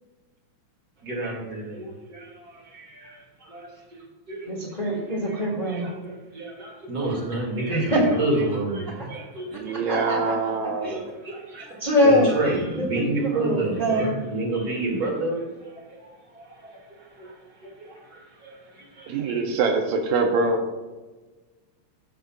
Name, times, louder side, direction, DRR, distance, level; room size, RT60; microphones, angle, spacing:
voice 1, 1.0-9.7 10.0-10.3 10.9-19.4, right 2 dB, 35° right, -3 dB, 2.4 m, -31 dB
voice 2, 4.5-5.9 7.7-8.0 9.0-9.1 9.9-10.3 10.8-11.0 11.8-12.9 13.1-14.1, left 1 dB, 20° left, -3 dB, 1.5 m, -23 dB
voice 3, 9.5-11.0 19.1-20.7, right 4 dB, 80° right, 3 dB, 2.1 m, -24 dB
14.5 x 6.7 x 2.4 m, 1.2 s
omnidirectional pair, 3.3 m